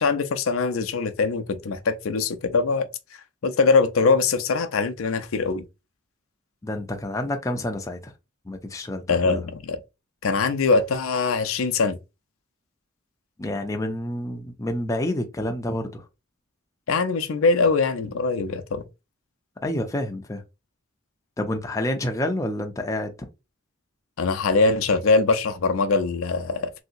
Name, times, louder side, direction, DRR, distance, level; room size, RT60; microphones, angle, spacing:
voice 1, 0.0-2.9 3.4-5.7 9.1-9.8 10.2-12.0 16.9-18.8 24.2-26.8, left 4 dB, 80° left, 0.5 m, -22 dB
voice 2, 6.6-8.1 8.5-9.4 13.4-16.0 19.6-20.4 21.4-23.3, left 1 dB, 15° left, 0.4 m, -28 dB
3.2 x 2.7 x 2.6 m
head